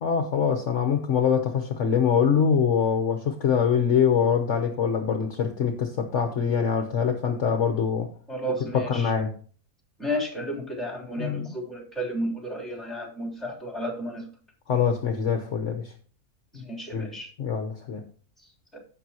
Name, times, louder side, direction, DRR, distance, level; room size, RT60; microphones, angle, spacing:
voice 1, 0.0-8.1 8.5-9.3 11.2-11.6 14.7-15.9 16.9-17.1 17.4-18.0, left 7 dB, 55° left, 1.2 m, -24 dB
voice 2, 8.3-9.1 10.0-14.2 16.5-17.3 18.7-18.8, equal, ahead, 3.2 m, -32 dB
15.5 x 6.2 x 2.9 m
omnidirectional pair, 1.6 m